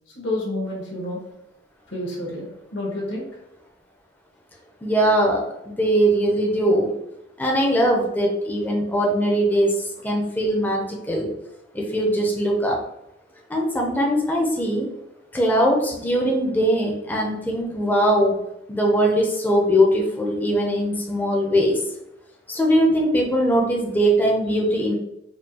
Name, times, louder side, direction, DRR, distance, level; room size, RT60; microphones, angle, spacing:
voice 1, 0.1-1.2 1.9-3.3, left 1 dB, 75° left, -3 dB, 1.2 m, -29 dB
voice 2, 4.8-5.4 5.7-6.9 7.4-11.3 11.7-12.8 13.5-14.9 15.3-18.3 18.7-21.8 22.5-25.0, equal, 10° left, -1 dB, 0.5 m, -21 dB
4.3 x 2.3 x 2.7 m, 0.83 s
head